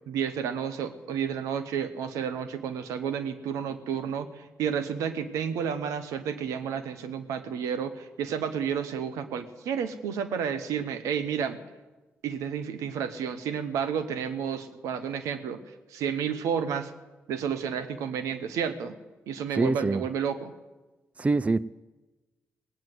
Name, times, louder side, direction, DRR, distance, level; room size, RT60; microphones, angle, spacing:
voice 1, 0.1-11.6 12.2-16.9 17.3-18.9 19.3-20.5, right 7 dB, 80° right, 11 dB, 1.0 m, -31 dB
voice 2, 19.6-20.0 21.2-21.6, right 3 dB, 25° right, 18 dB, 0.4 m, -24 dB
18.5 x 9.1 x 8.0 m, 1.1 s
supercardioid pair, 45°, 5 cm